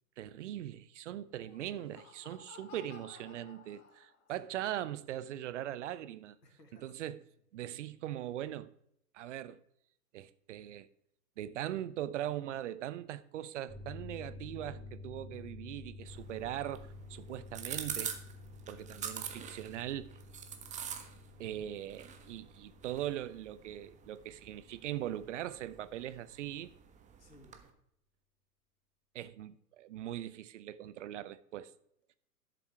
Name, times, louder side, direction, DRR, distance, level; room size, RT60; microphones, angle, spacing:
voice 1, 0.2-6.4 6.8-7.2 7.5-8.7 9.1-9.6 10.1-10.9 11.4-18.2 18.7-20.2 21.4-26.7 29.1-31.7, right 12 dB, 50° right, 0.8 m, -40 dB
Laughter, 1.2-4.4, left 4 dB, 50° left, 2.8 m, -56 dB
voice 2, 6.4-7.1 17.3-17.5 21.3-21.7 27.2-27.6, left 1 dB, 85° left, 2.4 m, -60 dB
sound 1, 13.7-25.8 26.1-26.2, left 2 dB, 10° left, 3.5 m, -51 dB
sound 2, 16.0-27.7, right 8 dB, 15° right, 1.1 m, -46 dB
12.0 x 7.0 x 4.7 m
figure-of-eight pair, 110°, 47 cm